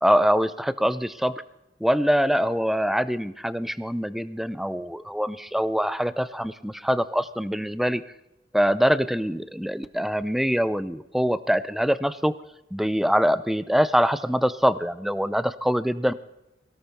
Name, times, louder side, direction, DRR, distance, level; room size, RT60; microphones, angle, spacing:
voice 1, 0.0-1.3 1.8-8.0 8.5-12.3 12.7-16.1, equal, ahead, 14 dB, 0.5 m, -24 dB
23.0 x 17.5 x 3.5 m, 0.88 s
head